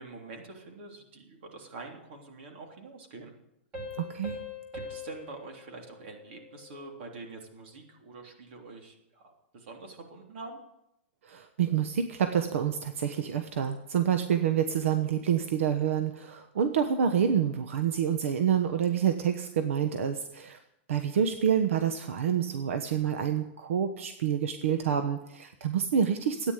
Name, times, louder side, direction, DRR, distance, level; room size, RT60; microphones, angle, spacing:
voice 1, 0.0-3.3 4.7-10.6, right 3 dB, 60° right, 2 dB, 3.4 m, -45 dB
sound 1, 3.7-7.0, left 3 dB, 20° right, 3.6 m, -43 dB
voice 2, 4.0-4.4 11.2-20.6 20.9-26.5, right 8 dB, 90° right, 7 dB, 1.1 m, -27 dB
14.0 x 9.5 x 8.2 m, 0.86 s
supercardioid pair, 165°, 7 cm